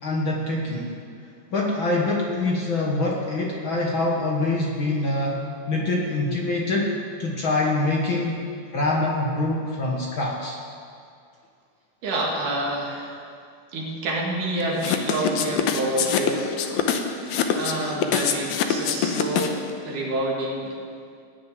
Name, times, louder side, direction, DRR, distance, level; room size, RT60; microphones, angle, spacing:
voice 1, 0.0-0.9 1.5-5.4 5.7-8.4 8.7-10.6, left 2 dB, 50° left, -2 dB, 1.8 m, -25 dB
voice 2, 12.0-13.2 13.7-16.6 17.1-20.8, right 1 dB, 75° right, -2 dB, 3.7 m, -28 dB
sound 1, 14.8-19.7, left 8 dB, 75° left, 2.2 m, -24 dB
18.0 x 6.7 x 9.6 m, 2.3 s
omnidirectional pair, 3.6 m